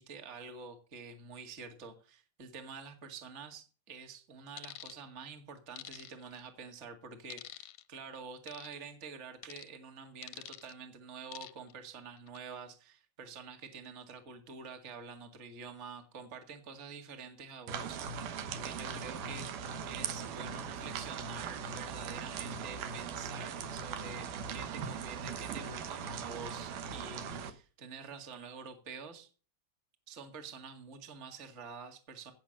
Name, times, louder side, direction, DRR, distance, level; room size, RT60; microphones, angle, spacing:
voice 1, 0.0-19.5 19.8-29.3 30.1-32.3, right 5 dB, 25° right, 6 dB, 1.7 m, -48 dB
sound 1, 4.6-5.0 5.8-6.4 7.3-7.8 8.5-8.7 9.4-9.7 10.2-10.7 11.3-11.7 12.2-12.4, left 14 dB, 75° left, 1.8 m, -47 dB
sound 2, 17.7-27.5, right 6 dB, 75° right, 2.6 m, -40 dB
16.5 x 6.6 x 6.4 m, 0.37 s
omnidirectional pair, 3.8 m